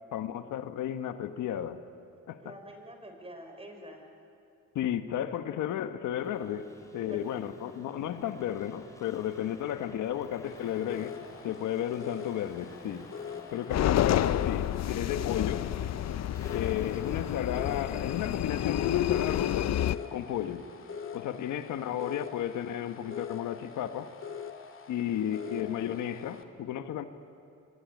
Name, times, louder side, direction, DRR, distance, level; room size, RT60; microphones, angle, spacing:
voice 1, 0.1-1.8 2.3-2.4 4.7-6.7 6.9-11.1 11.4-13.1 13.5-15.7 16.5-19.7 20.1-20.7 21.1-24.1 24.9-27.0, left 10 dB, 80° left, 9 dB, 1.4 m, -33 dB
voice 2, 2.4-4.1 7.1-7.5, right 1 dB, 20° right, 4 dB, 5.6 m, -47 dB
sound 1, 6.2-19.1, left 1 dB, 10° left, 5.2 m, -53 dB
sound 2, 10.4-26.4, left 6 dB, 45° left, 2.0 m, -44 dB
sound 3, 13.7-20.0, left 11 dB, 60° left, 0.8 m, -29 dB
26.0 x 24.5 x 9.4 m, 2.5 s
cardioid pair, 90°, 30 cm